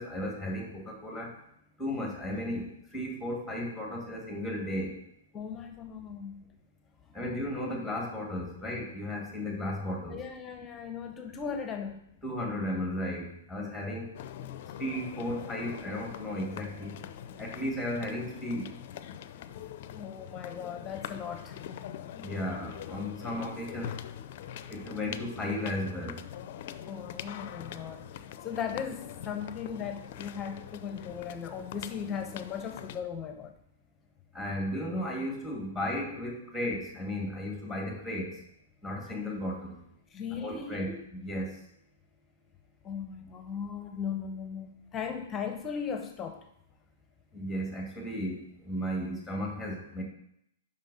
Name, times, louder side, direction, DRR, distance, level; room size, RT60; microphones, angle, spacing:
voice 1, 0.0-1.3 1.8-5.0 7.1-10.2 12.2-14.1 14.8-17.0 17.4-18.7 22.2-24.0 24.7-26.2 34.3-38.3 38.8-39.8 40.4-41.5 47.3-50.0, left 1 dB, ahead, -1 dB, 2.2 m, -34 dB
voice 2, 5.3-6.4 7.1-7.2 9.8-12.0 19.9-21.6 26.9-33.5 40.1-41.0 42.8-46.4, left 7 dB, 25° left, 7 dB, 0.9 m, -38 dB
sound 1, 14.1-33.0, left 10 dB, 55° left, 0.5 m, -43 dB
5.5 x 5.4 x 5.5 m, 0.75 s
hypercardioid pair, 115°, 0 cm